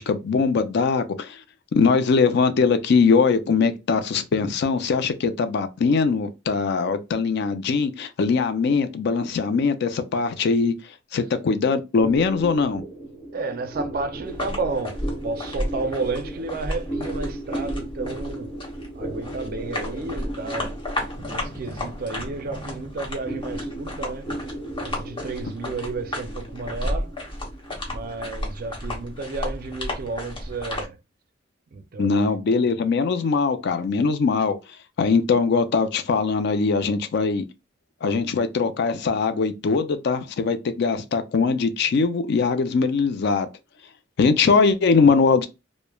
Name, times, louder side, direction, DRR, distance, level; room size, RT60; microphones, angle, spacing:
voice 1, 0.0-1.4 1.7-10.7 11.1-12.8 32.0-34.6 35.0-37.4 38.0-43.5 44.2-45.5, left 4 dB, 55° left, 0.4 m, -21 dB
sound 1, 12.0-30.7, right 1 dB, 10° right, 0.8 m, -36 dB
voice 2, 13.3-18.5 18.9-24.3 24.8-27.2 27.9-31.0 31.7-32.4, right 3 dB, 45° right, 0.4 m, -32 dB
sound 2, 14.2-30.8, left 1 dB, 25° left, 0.7 m, -33 dB
3.0 x 2.0 x 2.2 m
head